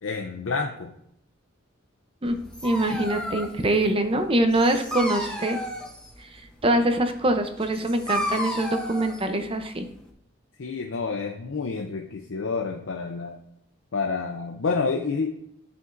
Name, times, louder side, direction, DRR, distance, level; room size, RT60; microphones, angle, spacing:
voice 1, 0.0-0.9 2.9-3.1 10.6-13.4 13.9-15.3, left 4 dB, 70° left, 3 dB, 0.6 m, -29 dB
Dog, 2.2-10.1, equal, 5° left, 0.8 m, -34 dB
voice 2, 2.2-5.6 6.6-9.8, right 1 dB, 25° right, 7 dB, 0.6 m, -24 dB
11.0 x 5.1 x 2.6 m, 0.73 s
head